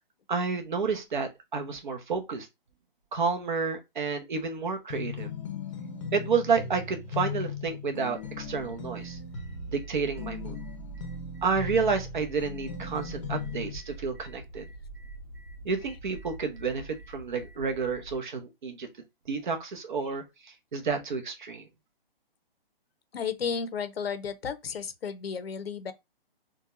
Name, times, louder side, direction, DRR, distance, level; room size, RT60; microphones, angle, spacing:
voice 1, 0.3-2.5 3.1-5.3 6.1-9.2 9.7-10.6 11.4-14.7 15.6-18.9 19.3-20.2 20.7-21.6, right 5 dB, 55° right, 0.9 m, -30 dB
sound 1, 4.9-13.8, left 5 dB, 35° left, 0.7 m, -38 dB
sound 2, 8.1-18.2, right 4 dB, 5° right, 1.2 m, -45 dB
voice 2, 23.1-25.9, left 6 dB, 85° left, 0.7 m, -33 dB
3.8 x 2.3 x 2.4 m
hypercardioid pair, 160°, 29 cm